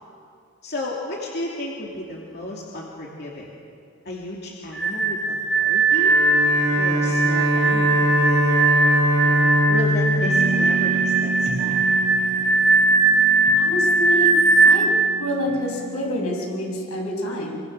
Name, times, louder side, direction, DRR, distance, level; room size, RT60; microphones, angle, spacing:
voice 1, 0.6-3.5 4.0-6.2 6.8-8.8 9.2-11.9, left 1 dB, 50° left, -3 dB, 2.8 m, -33 dB
sound 1, 4.7-14.9, right 3 dB, ahead, 1.2 m, -19 dB
Bowed string instrument, 5.9-11.4, equal, 85° right, 3.4 m, -22 dB
sound 2, 10.2-16.9, right 4 dB, 40° right, 2.9 m, -31 dB
voice 2, 13.6-14.3 14.6-17.6, left 1 dB, 85° left, -2 dB, 7.4 m, -27 dB
26.5 x 24.5 x 6.7 m, 2.4 s
head